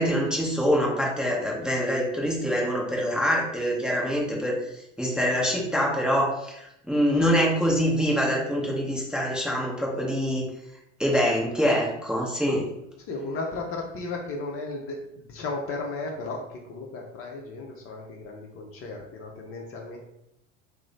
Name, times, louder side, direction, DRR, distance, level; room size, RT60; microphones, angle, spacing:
voice 1, 0.0-4.6 5.0-10.5 11.0-12.7, equal, ahead, -3 dB, 0.7 m, -25 dB
voice 2, 13.1-16.4 16.7-20.0, left 3 dB, 40° left, 0 dB, 0.6 m, -35 dB
2.9 x 2.0 x 3.9 m, 0.82 s
figure-of-eight pair, 75°, 37 cm